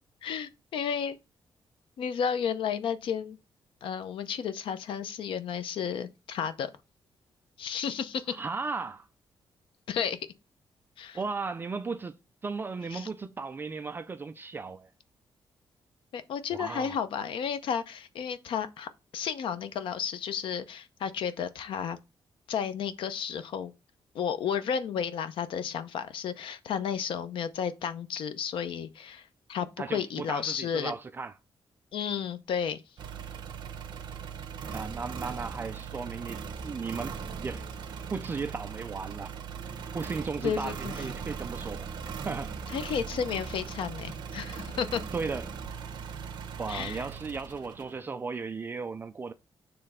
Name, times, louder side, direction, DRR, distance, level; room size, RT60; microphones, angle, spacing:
voice 1, 0.2-1.2 2.0-3.4 3.8-6.7 7.6-8.3 9.9-10.2 11.0-11.2 12.9-13.1 16.1-22.0 22.5-23.7 24.1-30.9 31.9-32.8 40.4-40.9 42.7-45.0 46.7-47.1, left 7 dB, 80° left, 0.7 m, -32 dB
voice 2, 8.3-9.1 11.1-12.1 12.4-14.9 16.5-17.0 29.8-31.3 34.7-37.7 38.1-39.3 39.9-41.9 42.2-42.6 45.1-45.5 46.6-49.3, right 4 dB, 25° right, 0.4 m, -36 dB
sound 1, 33.0-48.0, right 6 dB, 60° right, 1.0 m, -39 dB
6.8 x 3.3 x 5.5 m
wide cardioid pair, 180°, 9 cm